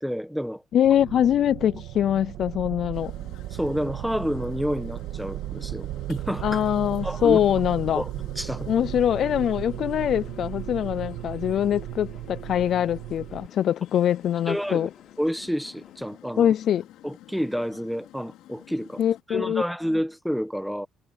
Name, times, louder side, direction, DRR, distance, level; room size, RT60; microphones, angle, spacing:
voice 1, 0.0-0.6 3.5-6.6 7.0-7.4 7.9-8.1 8.4-8.7 14.5-14.9 15.2-16.5 17.0-19.0 19.3-20.9, equal, ahead, 1.2 m, -29 dB
voice 2, 0.7-3.1 6.4-8.0 8.7-14.9 16.4-16.9 19.0-19.6, left 10 dB, 50° left, 0.5 m, -23 dB
sound 1, 0.8-13.5, right 14 dB, 80° right, 2.3 m, -35 dB
sound 2, 2.9-19.2, left 14 dB, 75° left, 5.4 m, -50 dB
sound 3, 9.2-16.1, left 6 dB, 30° left, 7.3 m, -56 dB
cardioid pair, 140°, 0 cm